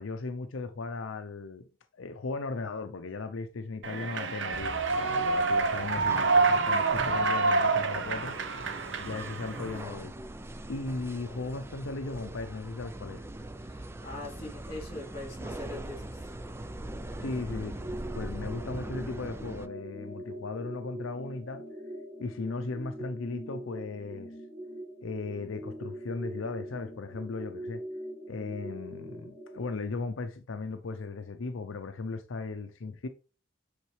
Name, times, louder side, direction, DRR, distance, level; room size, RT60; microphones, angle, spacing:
voice 1, 0.0-1.6 2.0-8.4 9.0-10.1 10.7-13.3 17.2-17.8 18.1-21.6 22.2-24.3 25.0-27.8 28.3-33.1, left 3 dB, 80° left, 0.6 m, -37 dB
Human voice / Clapping / Cheering, 3.8-9.8, right 3 dB, 65° right, 0.7 m, -27 dB
sound 1, 4.5-19.7, right 1 dB, 10° right, 0.3 m, -42 dB
voice 2, 13.6-16.3, left 2 dB, 30° left, 3.4 m, -42 dB
sound 2, 17.8-29.7, right 1 dB, 10° left, 1.1 m, -42 dB
8.4 x 4.0 x 3.2 m
head